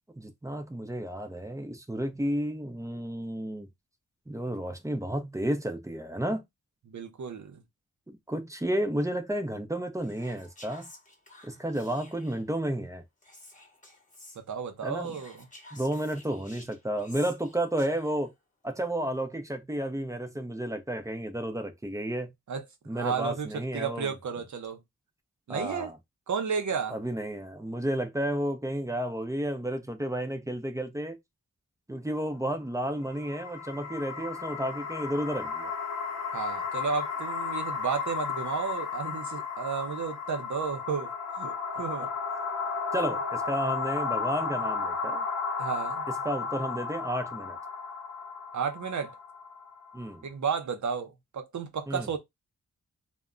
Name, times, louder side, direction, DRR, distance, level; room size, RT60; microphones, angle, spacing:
voice 1, 0.2-3.7 4.3-6.4 8.1-10.9 11.4-13.0 14.8-15.2 15.7-18.3 18.6-22.3 22.9-24.1 25.5-25.9 26.9-31.2 31.9-35.7 42.9-45.2 46.1-47.6 49.9-50.3 51.9-52.1, right 1 dB, 10° right, 0.5 m, -32 dB
voice 2, 6.9-7.6 14.5-15.5 22.5-22.6 22.9-24.8 25.5-25.9 26.3-27.0 36.3-42.1 45.6-46.1 48.5-49.1 50.2-52.2, right 6 dB, 70° right, 0.7 m, -33 dB
Whispering, 10.0-12.5 13.2-14.4 15.0-18.3, left 1 dB, 25° left, 0.9 m, -52 dB
sound 1, 33.0-50.1, left 5 dB, 60° left, 0.6 m, -34 dB
2.2 x 2.1 x 3.6 m
wide cardioid pair, 75°, 31 cm